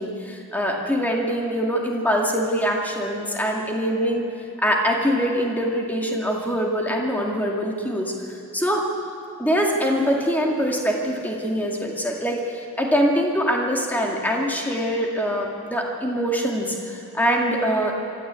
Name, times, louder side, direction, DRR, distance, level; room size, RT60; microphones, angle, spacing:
voice 1, 0.0-4.2 4.6-8.8 9.4-17.9, equal, 10° left, -1 dB, 2.2 m, -23 dB
25.0 x 13.5 x 8.4 m, 2.5 s
head